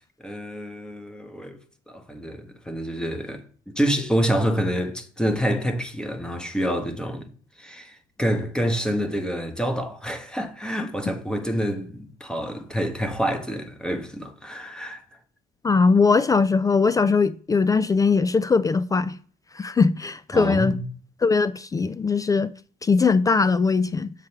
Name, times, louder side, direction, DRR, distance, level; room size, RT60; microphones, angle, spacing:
voice 1, 0.2-1.6 1.9-7.3 7.6-15.0 20.3-20.8, equal, 5° left, 1.1 m, -27 dB
voice 2, 15.6-19.2 19.5-20.7 21.2-22.5 22.8-24.1, left 4 dB, 20° left, 0.3 m, -20 dB
7.4 x 3.2 x 5.7 m
cardioid pair, 110°, 17 cm